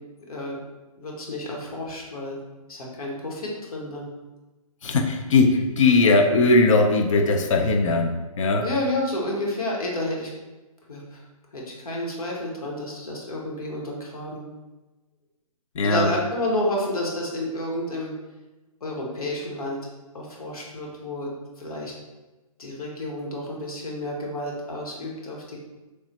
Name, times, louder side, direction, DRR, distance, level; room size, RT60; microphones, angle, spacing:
voice 1, 1.0-2.4 2.7-4.1 8.6-10.3 10.9-11.2 11.5-14.4 15.8-18.1 18.8-19.8 20.1-21.3 21.6-21.9 22.6-25.6, left 1 dB, 75° left, -2 dB, 0.9 m, -30 dB
voice 2, 4.8-8.6 15.8-16.1, left 3 dB, 55° left, 5 dB, 0.4 m, -19 dB
3.1 x 2.0 x 2.8 m, 1.1 s
hypercardioid pair, 140°, 19 cm